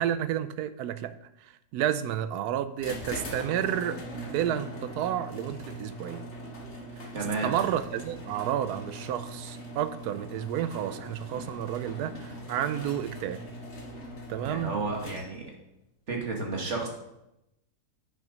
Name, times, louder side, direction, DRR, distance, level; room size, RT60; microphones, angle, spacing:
voice 1, 0.0-6.2 7.4-13.5 14.3-14.7, right 10 dB, 80° right, 1.1 m, -31 dB
sound 1, 2.8-15.6, equal, 45° left, 1.7 m, -41 dB
voice 2, 7.1-7.5 14.4-15.5 16.1-16.9, right 3 dB, 45° right, 1.9 m, -32 dB
9.0 x 6.3 x 5.1 m
omnidirectional pair, 1.7 m